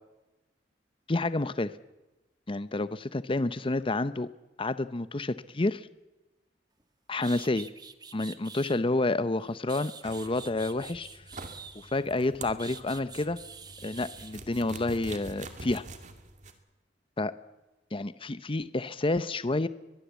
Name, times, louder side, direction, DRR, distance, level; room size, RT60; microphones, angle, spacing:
voice 1, 1.1-1.7 2.5-4.3 4.6-5.9 7.1-7.7 8.1-11.1 11.7-13.4 13.8-15.8 17.2-17.3 17.9-19.7, left 2 dB, 30° left, 14 dB, 0.7 m, -29 dB
sound 1, 6.8-6.9 7.2-8.8 9.4-12.1 12.6-14.3, right 5 dB, 25° right, 1.3 m, -46 dB
sound 2, 10.0-16.5, right 2 dB, 45° right, 2.4 m, -46 dB
22.0 x 22.0 x 8.3 m, 1.0 s
head